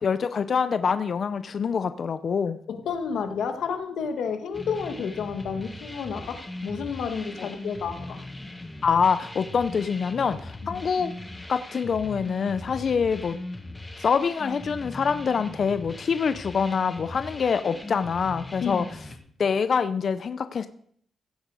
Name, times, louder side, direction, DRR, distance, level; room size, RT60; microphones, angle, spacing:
voice 1, 0.0-2.6 7.4-7.5 8.8-11.1 11.5-13.4 14.0-18.9 19.4-20.7, left 6 dB, 45° left, 11 dB, 0.5 m, -25 dB
voice 2, 2.7-8.2 10.6-10.8 18.6-18.8, left 6 dB, 80° left, 7 dB, 1.4 m, -31 dB
sound 1, 4.5-19.2, left 2 dB, 15° left, 1.4 m, -40 dB
16.0 x 7.7 x 4.8 m, 0.66 s
wide cardioid pair, 145°, 0 cm